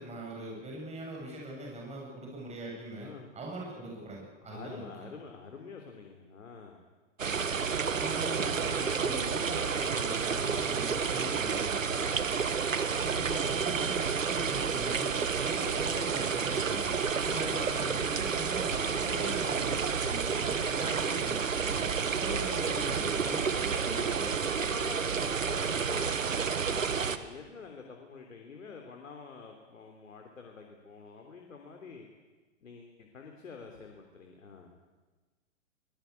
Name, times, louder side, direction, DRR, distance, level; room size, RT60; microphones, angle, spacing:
voice 1, 0.0-3.1 3.3-5.1 7.9-11.8 12.8-24.3, right 1 dB, 15° right, -1 dB, 7.5 m, -41 dB
voice 2, 4.4-6.8 11.8-12.2 17.3-17.6 20.6-20.8 21.9-22.3 23.4-26.2 26.6-32.1 32.6-34.8, left 5 dB, 80° left, 3 dB, 3.5 m, -47 dB
sound 1, 7.2-27.2, right 6 dB, 90° right, 1.6 m, -30 dB
22.0 x 20.5 x 8.4 m, 1.3 s
hypercardioid pair, 115°, 38 cm